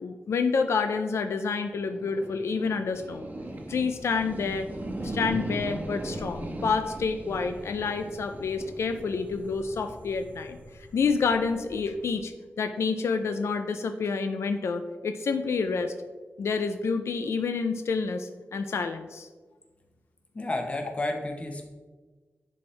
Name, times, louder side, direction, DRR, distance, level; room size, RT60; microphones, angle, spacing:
voice 1, 0.0-3.3 3.7-4.7 5.0-10.6 10.9-15.9 16.4-19.3, left 5 dB, 85° left, 7 dB, 0.4 m, -28 dB
sound 1, 1.8-12.2, right 1 dB, 40° right, 1.0 m, -39 dB
voice 2, 20.3-21.6, left 2 dB, 30° left, 3 dB, 1.0 m, -31 dB
10.5 x 4.4 x 3.3 m, 1.3 s
wide cardioid pair, 145°, 4 cm